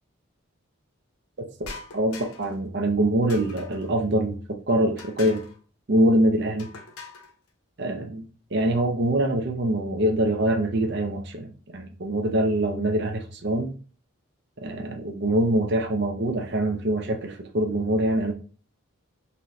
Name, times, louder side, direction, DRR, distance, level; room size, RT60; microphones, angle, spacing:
sound 1, 1.6-2.6 3.3-3.9 5.0-5.6 6.6-7.3, left 4 dB, 80° left, 1.0 m, -42 dB
voice 1, 1.9-5.4 5.9-6.7 7.8-13.7 14.6-18.3, right 1 dB, 50° right, 3 dB, 0.7 m, -24 dB
4.1 x 3.6 x 3.2 m, 0.38 s
head